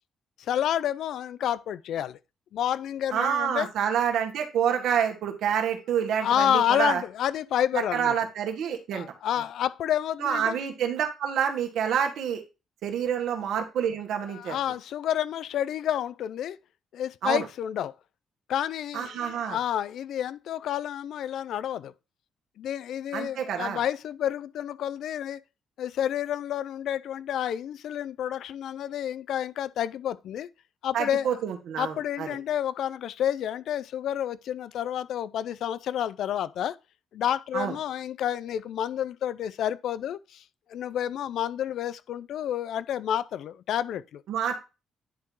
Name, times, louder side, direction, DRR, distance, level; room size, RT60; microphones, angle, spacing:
voice 1, 0.4-2.2 2.5-3.7 6.2-8.1 8.9-10.6 14.3-16.6 16.9-17.9 18.5-21.9 22.6-25.4 25.8-30.5 30.8-31.3 31.8-36.8 37.1-40.4 40.7-44.2, left 10 dB, 75° left, 0.5 m, -29 dB
voice 2, 3.1-7.0 7.9-9.1 10.2-12.4 12.8-14.6 17.2-17.4 18.9-19.6 23.1-23.8 30.9-32.4 37.5-37.8 44.3-44.6, right 8 dB, 75° right, 1.7 m, -28 dB
10.0 x 3.8 x 4.6 m
cardioid pair, 90°, 0 cm